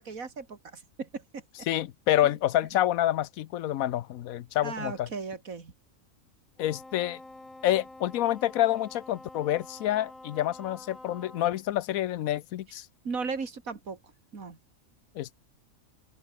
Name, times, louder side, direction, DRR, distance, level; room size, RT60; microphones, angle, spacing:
voice 1, 0.0-1.7 4.6-5.7 13.0-14.0 14.3-14.6, right 4 dB, 80° right, 2.8 m, -37 dB
voice 2, 1.7-5.1 6.6-7.2 7.6-12.9 15.1-15.4, left 13 dB, 90° left, 1.1 m, -28 dB
Wind instrument woodwind instrument, 6.6-11.6, left 2 dB, 70° left, 6.2 m, -48 dB
open air
omnidirectional pair, 1.4 m